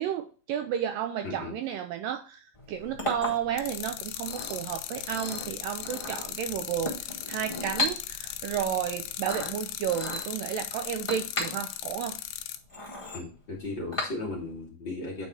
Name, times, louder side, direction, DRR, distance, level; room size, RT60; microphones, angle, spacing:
voice 1, 0.0-2.4 2.7-6.9 7.3-12.2, right 9 dB, 80° right, 7 dB, 2.1 m, -32 dB
voice 2, 1.2-1.6 13.1-15.3, left 2 dB, 35° left, -3 dB, 2.2 m, -36 dB
Chink clink, 2.5-14.6, left 2 dB, 20° left, 0.7 m, -37 dB
sound 1, 3.6-12.6, left 13 dB, 80° left, 2.4 m, -38 dB
9.1 x 4.1 x 4.9 m, 0.37 s
omnidirectional pair, 4.4 m